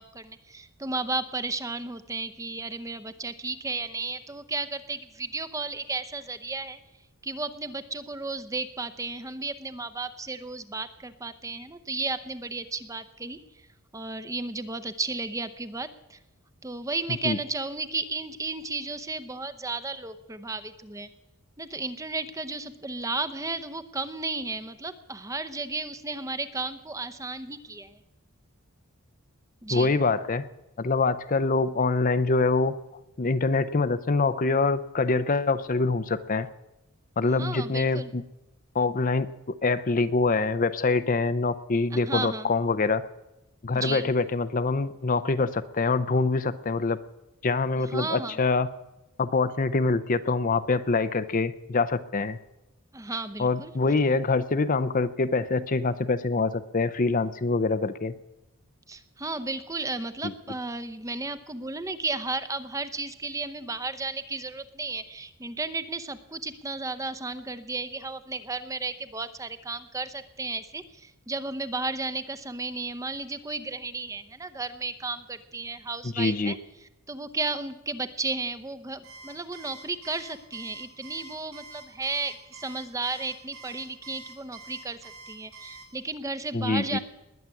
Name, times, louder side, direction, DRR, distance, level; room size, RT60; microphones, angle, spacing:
voice 1, 0.0-6.8 7.2-13.4 13.9-16.2 16.6-21.1 21.6-28.0 29.6-30.0 37.4-38.1 41.9-42.5 43.7-44.1 47.8-48.4 52.9-53.7 58.9-76.6 77.1-85.0 85.3-87.0, right 3 dB, 15° right, 12 dB, 0.7 m, -34 dB
voice 2, 29.7-30.5 30.8-32.7 33.2-36.5 37.2-38.2 38.7-43.0 43.6-47.0 47.4-48.7 49.2-52.4 53.4-58.1 60.2-60.3 76.0-76.6 86.5-87.0, left 3 dB, 35° left, 13 dB, 0.6 m, -25 dB
Alarm, 79.0-85.8, right 3 dB, 80° right, 7.8 m, -46 dB
20.0 x 7.4 x 9.5 m, 0.98 s
head